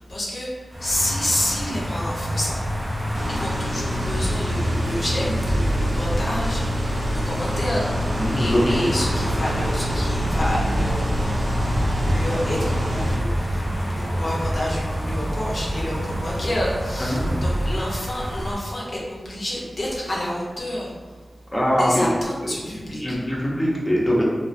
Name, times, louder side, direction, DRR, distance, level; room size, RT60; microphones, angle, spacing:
voice 1, 0.0-2.6 3.3-8.1 8.4-11.1 12.0-21.2 21.7-23.2, left 1 dB, 55° left, -5 dB, 0.5 m, -29 dB
sound 1, 0.7-18.5, equal, 15° right, 0.9 m, -28 dB
sound 2, 3.1-17.8, right 1 dB, 40° right, 0.4 m, -30 dB
sound 3, 3.1-13.2, left 1 dB, 85° right, 0.6 m, -29 dB
voice 2, 8.2-8.7 17.0-17.3 21.5-22.1 22.7-24.2, equal, 10° left, -5 dB, 0.6 m, -22 dB
2.3 x 2.3 x 2.4 m, 1.4 s
cardioid pair, 50°, 0 cm